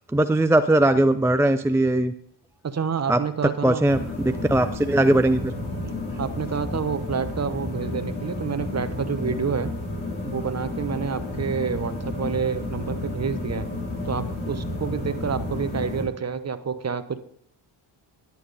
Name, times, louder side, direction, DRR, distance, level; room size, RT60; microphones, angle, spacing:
voice 1, 0.1-2.1 3.1-3.2 3.6-5.5, right 1 dB, 5° right, 9 dB, 0.4 m, -20 dB
voice 2, 2.6-3.8 6.2-9.7 10.2-13.7 14.0-17.2, right 6 dB, 30° right, 11 dB, 1.0 m, -28 dB
sound 1, 3.8-16.0, left 2 dB, 70° left, 4.7 m, -31 dB
11.0 x 8.6 x 4.1 m, 0.69 s
supercardioid pair, 60°, 50 cm